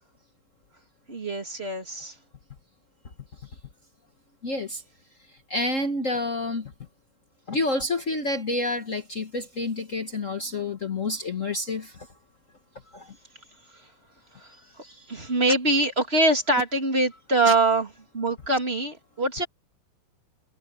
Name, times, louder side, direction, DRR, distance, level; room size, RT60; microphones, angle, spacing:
voice 1, 1.1-2.2 13.7-13.9 14.3-17.9 18.1-19.5, right 2 dB, 30° right, 2.7 m, -24 dB
voice 2, 4.4-4.8 5.5-6.7 7.5-12.1 12.9-13.2 17.5-17.6, left 2 dB, 40° left, 1.6 m, -28 dB
omnidirectional pair, 2.4 m